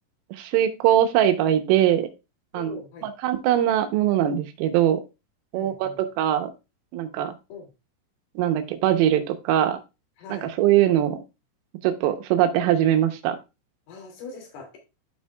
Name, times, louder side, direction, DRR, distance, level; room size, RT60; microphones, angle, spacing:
voice 1, 0.3-2.1 2.5-2.8 3.0-5.0 5.5-6.5 6.9-7.3 8.4-9.8 10.3-11.2 11.8-13.4, right 11 dB, 85° right, 7 dB, 3.5 m, -21 dB
voice 2, 2.5-3.1 5.5-6.0 7.5-7.7 10.2-10.5 13.9-14.8, left 4 dB, 55° left, 1 dB, 3.9 m, -41 dB
12.5 x 5.6 x 2.3 m, 0.27 s
omnidirectional pair, 5.8 m